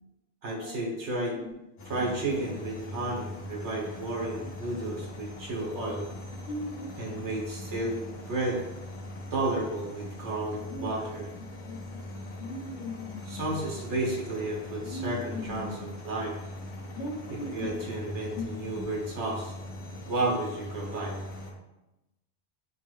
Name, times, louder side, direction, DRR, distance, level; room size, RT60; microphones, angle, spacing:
voice 1, 0.4-1.4 1.8-6.1 7.0-8.0 8.3-8.6 9.3-11.3 13.2-16.4 17.3-19.5 20.1-21.2, right 2 dB, 75° right, -2 dB, 1.3 m, -32 dB
sound 1, 1.8-21.5, left 1 dB, 90° left, 1.1 m, -42 dB
voice 2, 6.5-7.2 10.7-10.9 11.6-11.8 12.1-13.5 14.8-15.7 17.0-17.8 18.4-18.5 18.7-18.8, left 1 dB, 70° left, -3 dB, 1.2 m, -38 dB
6.4 x 2.4 x 3.1 m, 0.98 s
omnidirectional pair, 1.2 m